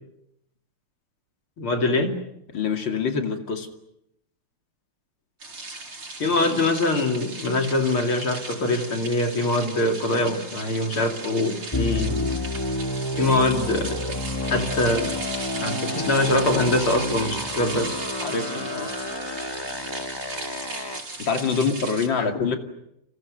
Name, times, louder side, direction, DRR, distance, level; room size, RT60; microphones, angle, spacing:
voice 1, 1.6-2.2 6.2-12.3 13.2-14.2 14.5-15.1 15.6-18.0 21.5-21.7 22.2-22.4, left 2 dB, 75° left, 4 dB, 4.0 m, -23 dB
voice 2, 2.5-3.7 18.2-18.9 21.2-22.6, left 5 dB, 60° left, 5 dB, 3.2 m, -25 dB
sound 1, 5.4-22.1, right 3 dB, 75° right, 5.9 m, -36 dB
sound 2, 11.7-21.0, left 2 dB, 10° left, 1.8 m, -30 dB
29.5 x 28.5 x 6.7 m, 0.80 s
omnidirectional pair, 2.4 m